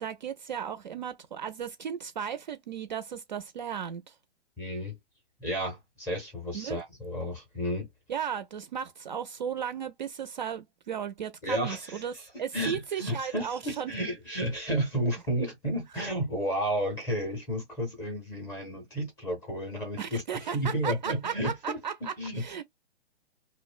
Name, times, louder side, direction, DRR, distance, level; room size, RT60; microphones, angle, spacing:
voice 1, 0.0-4.1 6.5-6.8 8.1-12.1 12.4-13.9 20.0-22.6, right 8 dB, 45° right, 0.4 m, -35 dB
voice 2, 4.6-5.0 5.4-7.9 11.4-12.1 12.5-21.8 22.2-22.6, equal, 10° left, 0.6 m, -32 dB
2.8 x 2.0 x 2.4 m
hypercardioid pair, 150°, 34 cm